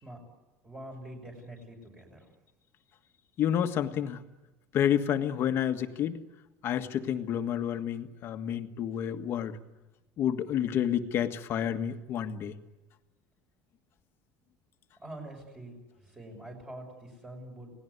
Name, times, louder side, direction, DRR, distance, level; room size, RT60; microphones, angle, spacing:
voice 1, 0.6-2.3 15.0-17.7, right 1 dB, 15° right, 1 dB, 6.0 m, -45 dB
voice 2, 3.4-4.2 4.7-6.2 6.6-9.6 10.2-12.5, left 9 dB, 45° left, 7 dB, 1.6 m, -29 dB
29.5 x 18.5 x 9.6 m, 1.1 s
cardioid pair, 150°, 6 cm